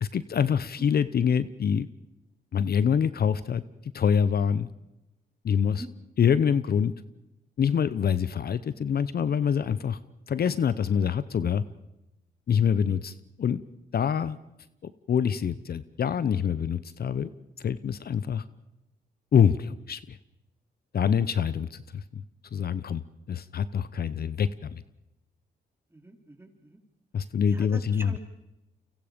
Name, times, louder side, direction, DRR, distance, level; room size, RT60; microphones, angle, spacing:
voice 1, 0.0-1.9 2.5-3.6 3.9-4.7 5.4-5.8 6.2-6.9 7.6-10.0 10.3-11.6 12.5-13.6 13.9-14.4 14.8-17.3 17.6-18.4 19.3-20.2 20.9-22.2 22.5-23.0 23.3-24.8 27.1-28.1, left 7 dB, 55° left, 15 dB, 0.9 m, -25 dB
voice 2, 25.9-26.8 27.5-28.2, right 1 dB, 15° right, 4 dB, 4.0 m, -45 dB
29.5 x 25.0 x 5.2 m, 0.93 s
cardioid pair, 70°, 18 cm